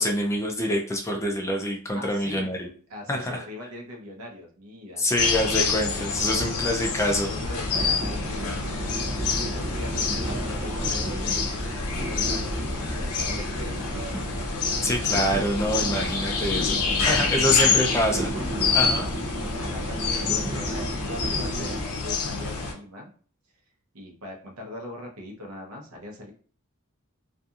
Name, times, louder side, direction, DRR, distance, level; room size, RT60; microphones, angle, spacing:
voice 1, 0.0-2.7 3.1-3.4 5.0-7.3 14.8-16.8 17.1-18.3 18.7-19.1, equal, 15° left, 1 dB, 0.4 m, -26 dB
voice 2, 1.9-2.6 2.9-5.3 6.1-6.8 7.1-8.8 9.3-14.0 16.2-18.0 18.5-19.1 19.6-23.1 23.9-26.3, left 1 dB, 90° right, 1 dB, 0.8 m, -41 dB
sound 1, 5.2-22.7, left 5 dB, 85° left, 0.6 m, -27 dB
sound 2, 7.4-21.8, right 1 dB, 35° right, 0.6 m, -33 dB
2.7 x 2.5 x 2.4 m, 0.43 s
head